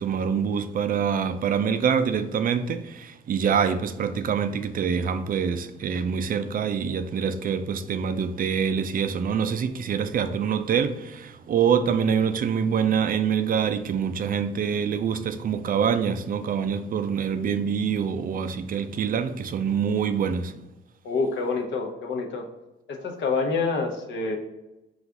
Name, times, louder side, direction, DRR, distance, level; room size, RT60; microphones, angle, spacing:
voice 1, 0.0-20.7, right 7 dB, 45° right, 0.4 m, -25 dB
voice 2, 21.0-22.4 22.9-24.4, left 4 dB, 65° left, 0.8 m, -27 dB
4.0 x 2.5 x 4.6 m
cardioid pair, 90°, 20 cm